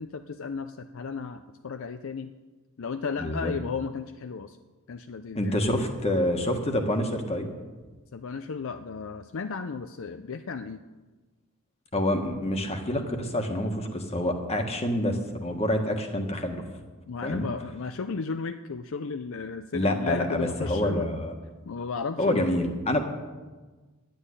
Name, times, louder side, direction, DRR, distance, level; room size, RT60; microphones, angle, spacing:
voice 1, 0.0-2.3 2.8-4.6 4.9-5.6 8.1-10.8 17.1-21.1 21.7-22.5, left 5 dB, 60° left, 9 dB, 0.5 m, -34 dB
voice 2, 3.2-3.5 5.3-7.5 11.9-16.6 17.2-17.5 19.7-21.3 22.2-23.0, left 1 dB, 30° left, 5 dB, 1.5 m, -27 dB
11.0 x 9.2 x 9.8 m, 1.3 s
head